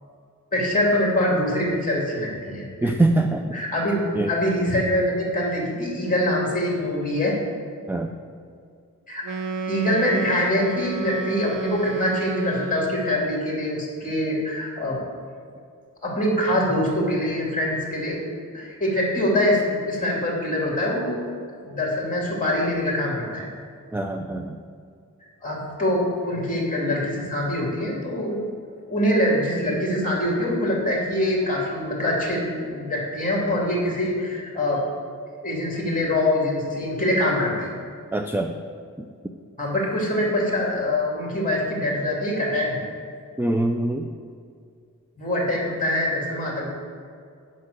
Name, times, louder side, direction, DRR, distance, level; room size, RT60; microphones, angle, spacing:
voice 1, 0.5-2.9 3.5-4.0 4.3-7.3 9.1-9.4 9.7-15.0 16.0-18.2 18.5-21.2 21.6-23.5 25.4-28.4 28.9-34.9 35.4-37.7 39.6-42.9 45.2-46.7, left 1 dB, 25° left, -3 dB, 2.6 m, -24 dB
voice 2, 2.8-3.6 4.2-4.3 7.9-8.1 23.9-24.6 38.1-38.6 43.4-44.1, right 2 dB, 5° right, 5 dB, 0.4 m, -23 dB
Wind instrument woodwind instrument, 9.2-13.3, right 5 dB, 80° right, 0.7 m, -30 dB
9.7 x 5.6 x 6.5 m, 2.3 s
wide cardioid pair, 125°, 32 cm